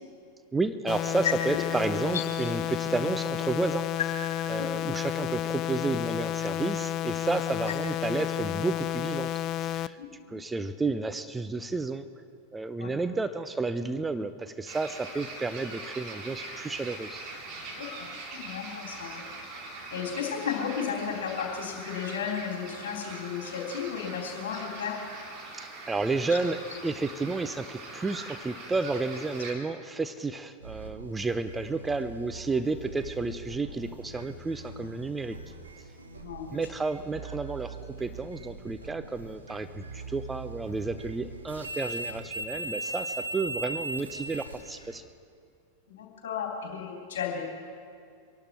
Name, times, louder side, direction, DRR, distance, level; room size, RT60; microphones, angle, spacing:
voice 1, 0.5-3.9 4.5-9.3 9.6-10.0 10.3-12.1 12.5-17.2 25.6-35.4 36.5-45.1, right 3 dB, 10° right, 12 dB, 0.6 m, -31 dB
sound 1, 0.9-9.9, left 12 dB, 35° left, 0.4 m, -31 dB
voice 2, 10.0-10.4 12.8-12.9 17.7-19.2 19.9-25.0 36.2-36.6 45.9-47.4, left 7 dB, 55° left, -1 dB, 3.6 m, -34 dB
sound 2, 14.6-29.5, right 3 dB, 35° right, 2.7 m, -42 dB
sound 3, 30.6-45.0, right 2 dB, 80° right, 1.3 m, -40 dB
24.5 x 12.0 x 4.4 m, 2.3 s
figure-of-eight pair, 90°, 0 cm